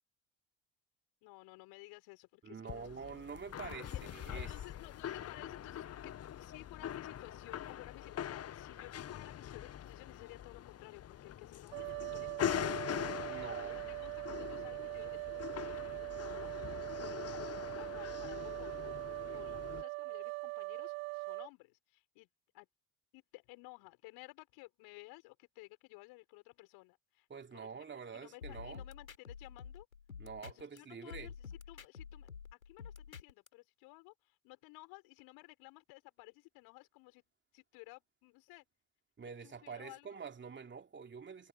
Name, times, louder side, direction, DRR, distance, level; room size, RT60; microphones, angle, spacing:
voice 1, 1.2-2.9 3.3-3.4 3.8-4.0 4.3-19.0 19.3-22.3 22.5-22.7 23.1-27.3 27.5-27.7 28.1-29.9 30.5-37.2 37.5-38.6 39.4-40.2, left 24 dB, 65° left, 6.2 m, -56 dB
voice 2, 2.4-4.5 13.2-14.0 27.3-28.8 30.2-31.3 39.2-41.5, right 6 dB, 30° right, 3.0 m, -47 dB
sound 1, 2.7-19.8, left 10 dB, 35° left, 1.2 m, -43 dB
sound 2, 11.7-21.5, right 33 dB, 65° right, 1.9 m, -42 dB
sound 3, 28.4-30.8 31.1-33.5, left 6 dB, 90° left, 4.1 m, -49 dB
hypercardioid pair, 60°, 40 cm